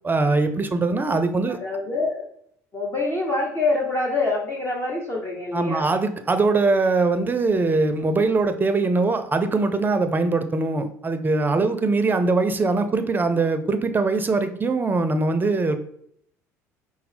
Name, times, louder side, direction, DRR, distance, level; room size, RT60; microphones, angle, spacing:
voice 1, 0.0-1.6 5.5-15.8, right 3 dB, 25° right, 8 dB, 0.6 m, -22 dB
voice 2, 1.5-2.3 2.7-5.9, left 3 dB, 30° left, -2 dB, 0.9 m, -25 dB
5.3 x 2.0 x 4.3 m, 0.68 s
hypercardioid pair, 65°, 8 cm